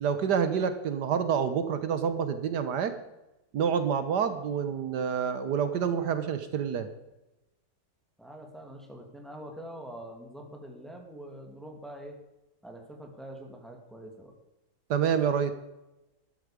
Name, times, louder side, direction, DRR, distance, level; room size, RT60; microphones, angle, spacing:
voice 1, 0.0-2.9 3.5-6.9 14.9-15.5, right 7 dB, 75° right, 10 dB, 1.5 m, -28 dB
voice 2, 8.2-12.2 12.6-14.3, right 1 dB, ahead, 2 dB, 2.5 m, -44 dB
13.5 x 12.5 x 5.1 m, 0.97 s
omnidirectional pair, 1.9 m